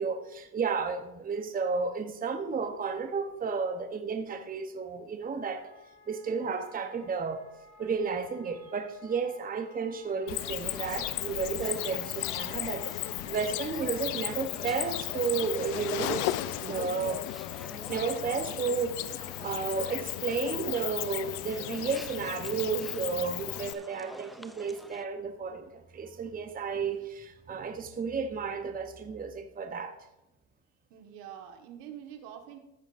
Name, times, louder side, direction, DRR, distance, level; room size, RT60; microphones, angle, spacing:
voice 1, 0.0-5.7 6.1-7.4 7.8-16.3 16.6-17.2 17.9-30.0, right 5 dB, 20° right, 0.9 m, -32 dB
Wind instrument woodwind instrument, 5.5-16.8, equal, 20° left, 2.2 m, -56 dB
Cricket, 10.3-23.7, left 16 dB, 75° left, 0.6 m, -35 dB
sound 1, 10.6-25.1, equal, ahead, 0.4 m, -48 dB
voice 2, 30.9-32.6, right 10 dB, 75° right, 1.7 m, -45 dB
14.5 x 8.2 x 2.6 m
supercardioid pair, 95°, 47 cm